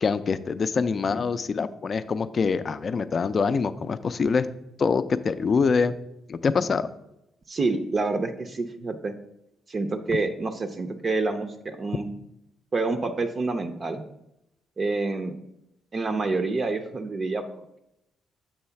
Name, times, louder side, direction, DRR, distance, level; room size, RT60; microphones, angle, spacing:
voice 1, 0.0-4.5 4.8-5.9 6.3-6.9, left 5 dB, 45° left, 13 dB, 0.4 m, -24 dB
voice 2, 7.5-9.1 9.7-12.1 12.7-14.0 14.8-15.4 15.9-17.5, right 3 dB, 40° right, 6 dB, 0.5 m, -27 dB
7.0 x 3.2 x 5.7 m, 0.83 s
cardioid pair, 90°, 0 cm